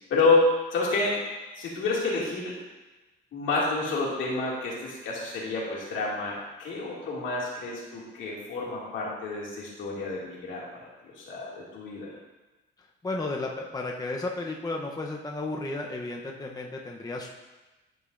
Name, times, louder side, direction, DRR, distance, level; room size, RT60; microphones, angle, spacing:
voice 1, 0.1-1.2 1.6-2.5 3.3-10.6 11.0-12.1, left 3 dB, 80° left, -4 dB, 2.3 m, -28 dB
voice 2, 13.0-17.3, left 2 dB, 20° left, 0 dB, 0.8 m, -33 dB
12.5 x 5.3 x 2.6 m, 1.1 s
cardioid pair, 90°, 20 cm